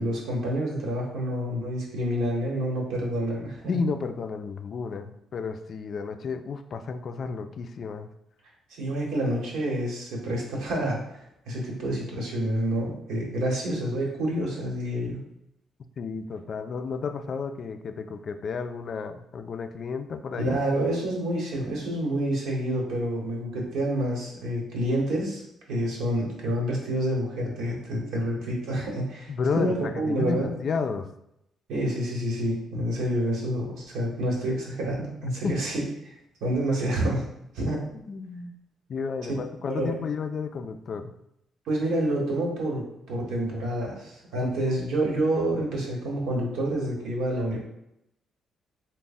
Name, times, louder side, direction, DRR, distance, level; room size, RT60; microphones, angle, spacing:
voice 1, 0.0-3.8 8.7-11.2 11.5-15.2 20.4-25.4 25.7-30.5 31.7-35.9 36.4-37.2 37.5-37.8 39.7-39.9 41.7-47.6, right 1 dB, 85° right, -2 dB, 1.1 m, -28 dB
voice 2, 3.7-8.1 16.0-20.6 29.3-31.1 35.4-35.6 37.7-38.5 38.9-41.1 44.4-44.7, left 5 dB, 55° left, 8 dB, 0.3 m, -32 dB
3.4 x 2.1 x 4.0 m, 0.80 s
cardioid pair, 90°, 0 cm